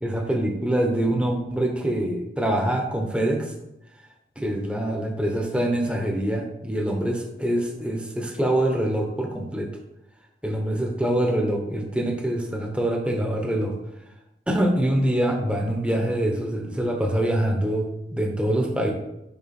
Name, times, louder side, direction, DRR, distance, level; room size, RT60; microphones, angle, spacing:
voice 1, 0.0-3.5 4.4-9.7 10.4-13.8 14.5-18.9, right 1 dB, 5° right, 1 dB, 0.9 m, -25 dB
7.0 x 5.7 x 4.3 m, 0.89 s
head